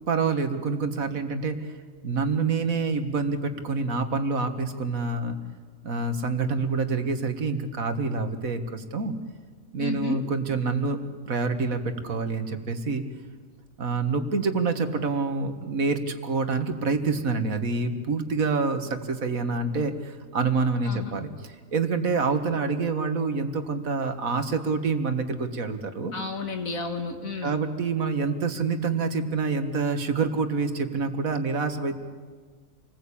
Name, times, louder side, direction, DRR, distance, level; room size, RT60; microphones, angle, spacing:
voice 1, 0.1-1.6 2.0-5.4 5.8-9.1 9.7-13.0 13.8-26.1 27.4-32.0, right 4 dB, 85° right, 7 dB, 2.1 m, -27 dB
voice 2, 9.8-10.2 20.9-21.1 26.1-27.6, left 3 dB, 80° left, 5 dB, 2.5 m, -32 dB
27.5 x 20.0 x 8.6 m, 1.5 s
omnidirectional pair, 1.4 m